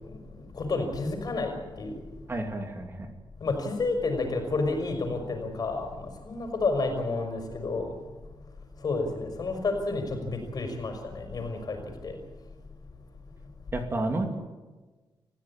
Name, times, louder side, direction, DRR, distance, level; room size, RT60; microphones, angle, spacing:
voice 1, 0.6-1.9 3.4-7.9 8.8-11.8 12.0-12.1, left 3 dB, 50° left, 4 dB, 5.6 m, -30 dB
voice 2, 2.3-3.1 13.7-14.3, right 2 dB, 25° right, 3 dB, 2.6 m, -30 dB
28.0 x 15.5 x 8.9 m, 1.3 s
wide cardioid pair, 175°, 9 cm